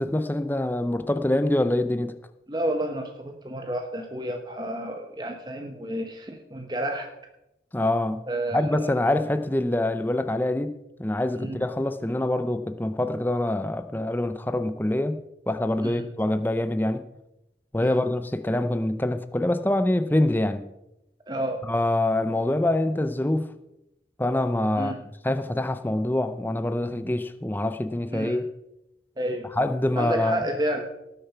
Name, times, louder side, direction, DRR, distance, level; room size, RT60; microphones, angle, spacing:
voice 1, 0.0-2.1 7.7-8.2 8.5-15.2 15.5-17.0 17.7-20.7 21.7-23.5 24.2-24.9 25.2-28.4 29.6-30.4, left 1 dB, 10° left, 10 dB, 0.6 m, -25 dB
voice 2, 2.5-7.1 8.3-9.2 11.4-11.6 15.8-16.0 17.8-18.0 21.3-21.6 24.8-25.0 28.1-28.4 29.2-29.5 30.0-30.9, right 1 dB, 25° right, 4 dB, 1.0 m, -30 dB
18.5 x 6.7 x 5.8 m, 0.90 s
head